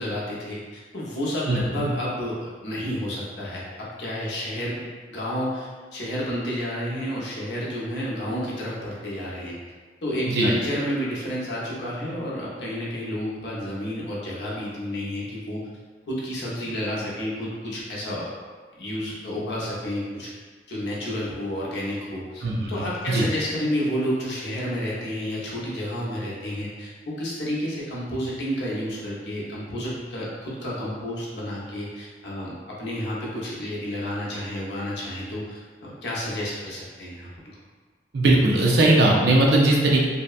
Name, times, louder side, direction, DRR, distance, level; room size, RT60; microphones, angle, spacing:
voice 1, 0.0-9.5 10.0-15.7 16.1-18.3 18.8-20.3 20.7-37.3, equal, 70° left, -6 dB, 0.7 m, -30 dB
voice 2, 1.5-1.9 10.3-10.5 22.4-22.7 23.1-23.3 38.1-40.1, right 2 dB, 65° right, -2 dB, 0.4 m, -19 dB
2.7 x 2.1 x 2.3 m, 1.5 s
head